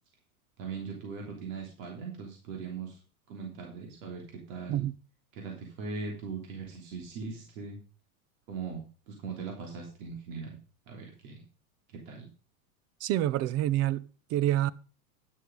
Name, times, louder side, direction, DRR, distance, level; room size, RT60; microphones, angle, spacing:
voice 1, 0.6-3.0 3.3-4.8 5.3-7.8 8.5-10.6 10.9-11.4 12.0-12.3, right 5 dB, 60° right, 3.3 m, -40 dB
voice 2, 13.0-14.7, right 13 dB, 35° right, 0.7 m, -27 dB
11.0 x 6.6 x 5.3 m
hypercardioid pair, 120°, 44 cm